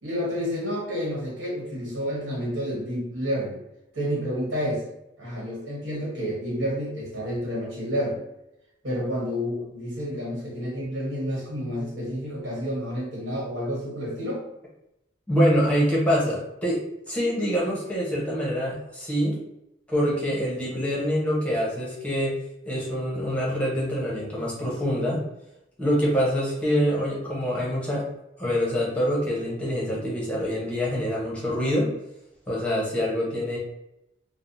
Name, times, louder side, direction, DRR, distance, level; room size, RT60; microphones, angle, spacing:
voice 1, 0.0-3.6 3.9-4.8 5.2-8.2 8.8-14.4, equal, 75° right, -3 dB, 1.2 m, -29 dB
voice 2, 15.3-16.8 17.1-19.4 19.9-22.4 22.7-25.2 25.8-28.1 28.4-31.9 32.5-33.6, equal, 5° left, -5 dB, 0.8 m, -25 dB
3.4 x 2.0 x 2.6 m, 0.87 s
head